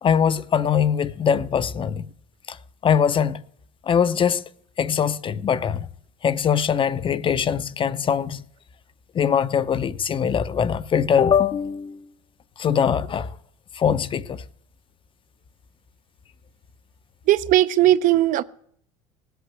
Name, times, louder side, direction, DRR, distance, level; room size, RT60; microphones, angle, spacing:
voice 1, 0.0-2.1 2.5-2.6 2.8-3.4 3.8-4.4 4.8-5.9 6.2-8.4 9.1-12.1 12.6-13.3 13.7-14.4, left 7 dB, 30° left, 0.7 m, -22 dB
voice 2, 17.3-18.4, right 14 dB, 50° right, 0.8 m, -18 dB
17.5 x 8.1 x 8.1 m
supercardioid pair, 105°, 17 cm